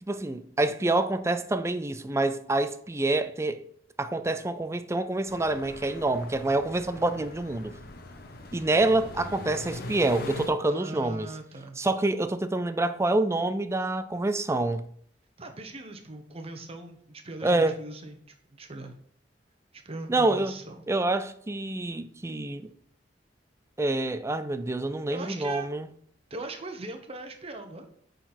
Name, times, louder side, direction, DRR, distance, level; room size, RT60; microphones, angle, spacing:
voice 1, 0.0-3.6 4.0-7.7 8.5-11.3 11.8-14.9 17.4-17.8 20.1-20.5 20.9-22.7 23.8-25.9, right 2 dB, 15° right, 0.4 m, -27 dB
sound 1, 5.3-10.5, left 2 dB, 55° left, 0.9 m, -42 dB
voice 2, 10.7-11.8 15.4-18.2 18.5-18.9 19.7-20.8 25.1-25.7 26.3-27.9, right 2 dB, 35° right, 1.0 m, -40 dB
9.0 x 4.0 x 4.3 m
head